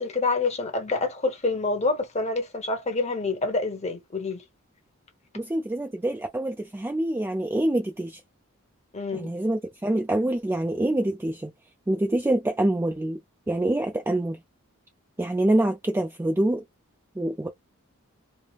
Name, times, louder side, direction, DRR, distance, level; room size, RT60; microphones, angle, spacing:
voice 1, 0.0-4.4 8.9-9.3, left 3 dB, 30° left, 0.8 m, -27 dB
voice 2, 5.3-8.2 9.1-11.5 11.9-13.2 13.5-14.4 15.2-16.6 17.2-17.5, right 1 dB, 10° right, 0.3 m, -25 dB
3.3 x 2.0 x 2.3 m
head